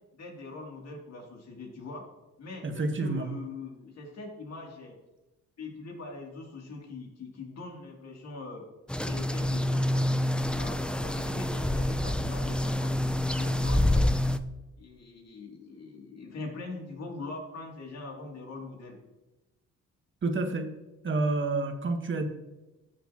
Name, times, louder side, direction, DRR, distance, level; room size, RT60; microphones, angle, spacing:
voice 1, 0.1-2.0 2.4-4.9 5.6-8.6 9.0-10.1 10.5-12.9 13.3-14.2 14.8-19.0, left 3 dB, 60° left, 0 dB, 2.9 m, -42 dB
voice 2, 2.6-3.3 20.2-20.7 21.0-22.3, right 3 dB, 40° right, 5 dB, 1.5 m, -29 dB
sound 1, 8.9-14.4, left 1 dB, 5° left, 0.5 m, -27 dB
13.0 x 7.0 x 3.0 m, 1.0 s
cardioid pair, 90°, 30 cm